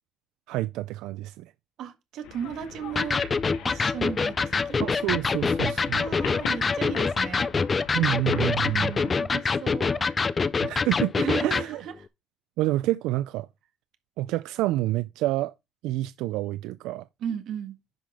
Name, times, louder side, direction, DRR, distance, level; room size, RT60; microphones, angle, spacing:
voice 1, 0.5-1.5 4.8-6.0 7.9-8.9 10.6-11.1 11.4-11.8 12.6-13.5 14.2-15.5 15.8-17.1, right 16 dB, 85° right, 0.4 m, -28 dB
voice 2, 1.8-3.2 3.6-4.8 5.9-7.5 8.6-10.0 11.2-11.9 17.2-17.8, right 8 dB, 55° right, 1.6 m, -35 dB
sound 1, 2.2-9.1, left 8 dB, 75° left, 2.4 m, -42 dB
Electric guitar, 3.0-11.7, left 4 dB, 20° left, 0.4 m, -25 dB
10.0 x 5.9 x 3.6 m
cardioid pair, 175°, 0 cm